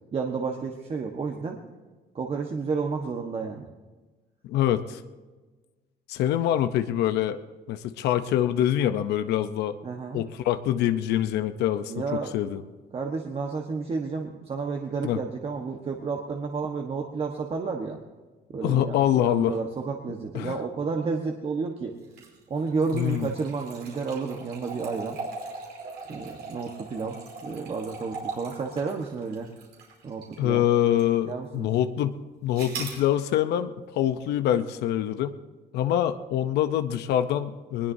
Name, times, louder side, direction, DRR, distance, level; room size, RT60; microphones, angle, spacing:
voice 1, 0.1-1.6 2.1-3.7 9.8-10.2 11.9-12.3 12.9-18.0 18.5-21.9 22.5-25.2 26.1-29.5 30.0-30.6 31.2-31.7, right 4 dB, 35° right, 2 dB, 1.3 m, -31 dB
voice 2, 4.5-5.0 6.1-7.4 7.7-9.8 10.1-12.6 15.0-15.2 18.6-19.5 20.3-20.5 22.9-23.3 30.4-35.4 35.7-37.9, left 11 dB, 80° left, 10 dB, 0.7 m, -25 dB
sound 1, 22.0-30.5 31.0-31.1 32.5-33.0, right 4 dB, 80° right, 5.0 m, -40 dB
20.0 x 20.0 x 2.7 m, 1.3 s
cardioid pair, 110°, 17 cm